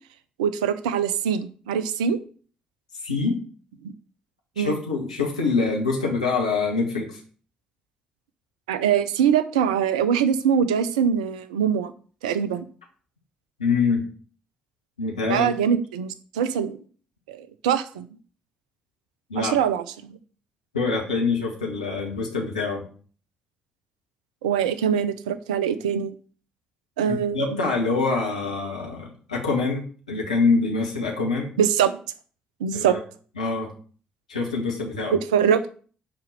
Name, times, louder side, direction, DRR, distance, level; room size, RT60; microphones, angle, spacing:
voice 1, 0.4-2.2 4.6-4.8 8.7-11.9 12.2-12.7 15.3-16.8 17.3-18.1 19.4-20.2 24.4-26.1 27.0-27.6 31.6-31.9 32.6-32.9 35.1-35.6, right 8 dB, 80° right, 13 dB, 0.6 m, -23 dB
voice 2, 3.0-3.4 4.6-7.2 13.6-14.0 15.0-15.5 19.3-19.6 20.7-22.8 27.0-31.5 32.7-33.0 33.4-33.7 34.3-35.1, left 4 dB, 85° left, -1 dB, 1.6 m, -25 dB
10.5 x 4.4 x 6.5 m, 0.42 s
figure-of-eight pair, 40°, 4 cm